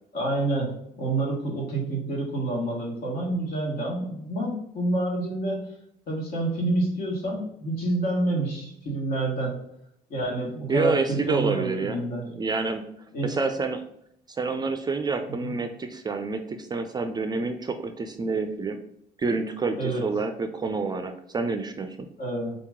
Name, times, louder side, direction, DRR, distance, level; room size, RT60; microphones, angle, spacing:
voice 1, 0.1-5.7 6.1-9.5 10.1-12.2 13.1-13.3 15.4-15.5 19.8-20.0 22.2-22.5, right 2 dB, 60° left, -1 dB, 1.6 m, -28 dB
voice 2, 10.7-12.9 13.2-13.8 14.3-18.8 19.2-22.1, right 4 dB, 25° right, 7 dB, 0.4 m, -28 dB
3.9 x 2.9 x 3.6 m, 0.73 s
cardioid pair, 110°, 17 cm